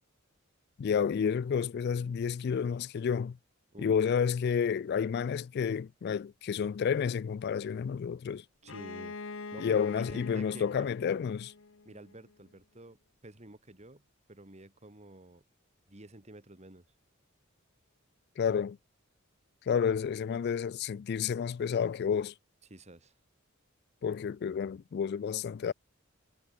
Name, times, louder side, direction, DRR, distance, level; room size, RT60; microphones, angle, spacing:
voice 1, 0.8-3.4 3.8-8.4 9.6-11.5 18.4-18.8 19.7-22.3 24.0-25.7, left 7 dB, 50° left, 0.3 m, -30 dB
Bowed string instrument, 8.6-12.3, left 4 dB, 65° left, 1.1 m, -44 dB
voice 2, 8.6-9.2 9.5-11.3 11.8-15.4 15.9-16.8 22.7-23.1, right 1 dB, 35° right, 2.3 m, -50 dB
head